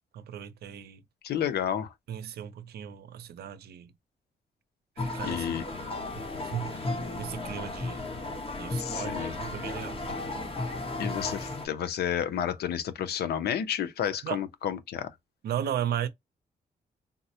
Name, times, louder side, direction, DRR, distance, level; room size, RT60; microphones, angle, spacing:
voice 1, 0.1-1.0 2.1-3.9 5.0-5.5 5.7-6.8 7.2-8.1 8.5-10.4 14.2-14.4 15.4-16.1, right 9 dB, 85° right, 0.6 m, -36 dB
voice 2, 1.2-1.9 5.2-5.6 8.8-9.3 11.0-15.1, left 9 dB, 85° left, 0.6 m, -31 dB
sound 1, 5.0-11.7, left 2 dB, 35° left, 1.0 m, -34 dB
3.7 x 2.1 x 2.7 m
cardioid pair, 95°, 16 cm